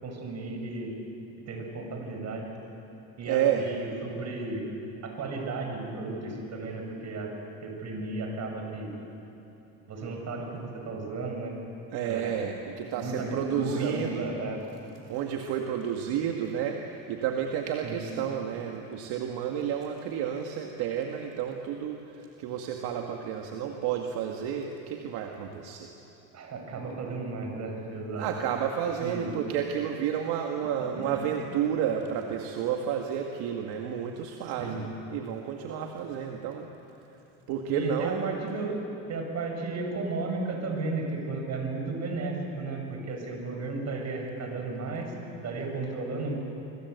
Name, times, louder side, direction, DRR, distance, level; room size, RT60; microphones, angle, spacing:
voice 1, 0.0-0.9 1.5-2.5 3.2-4.6 5.0-8.9 9.9-11.5 12.0-12.5 13.0-14.6 17.8-18.0 26.3-28.3 29.0-29.3 30.6-31.2 34.6-34.8 37.7-38.8 39.1-45.1 45.4-46.4, right 3 dB, 40° right, 2 dB, 7.0 m, -34 dB
voice 2, 3.3-3.7 11.9-14.3 15.1-25.9 28.2-36.7 37.5-38.4, right 8 dB, 65° right, 2 dB, 2.0 m, -31 dB
25.0 x 24.5 x 8.2 m, 3.0 s
supercardioid pair, 115°, 41 cm